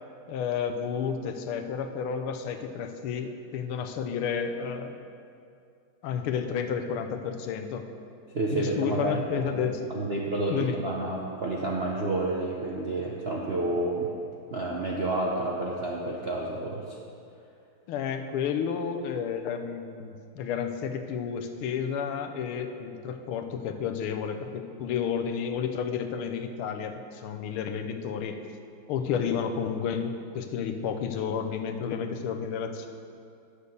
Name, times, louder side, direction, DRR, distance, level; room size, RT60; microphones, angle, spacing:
voice 1, 0.3-4.9 6.0-7.9 8.5-9.9 10.5-10.8 17.9-28.4 28.9-32.9, left 7 dB, 80° left, 6 dB, 1.6 m, -31 dB
voice 2, 8.3-9.5 9.9-14.1 14.5-17.0, right 2 dB, 60° right, -3 dB, 0.6 m, -30 dB
9.7 x 6.7 x 6.7 m, 2.4 s
omnidirectional pair, 2.3 m